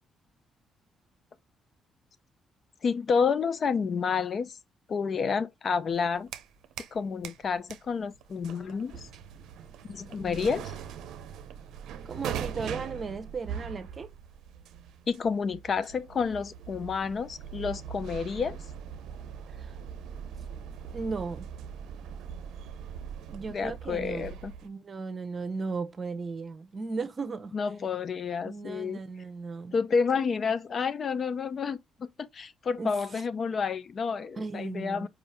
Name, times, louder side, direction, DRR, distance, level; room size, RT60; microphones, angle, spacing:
voice 1, 2.8-4.6 4.9-6.3 6.9-9.1 9.9-10.7 15.1-18.6 23.5-24.5 27.5-29.0 29.7-35.1, left 5 dB, 50° left, 0.5 m, -30 dB
sound 1, 5.9-7.0 7.2-24.7, right 8 dB, 85° right, 0.5 m, -41 dB
voice 2, 12.0-14.1 19.5-19.8 20.9-21.5 23.3-24.3 24.6-27.5 28.4-29.7 32.8-32.9 34.4-35.1, right 4 dB, 40° right, 0.8 m, -36 dB
5.0 x 2.7 x 3.2 m
cardioid pair, 90°, 0 cm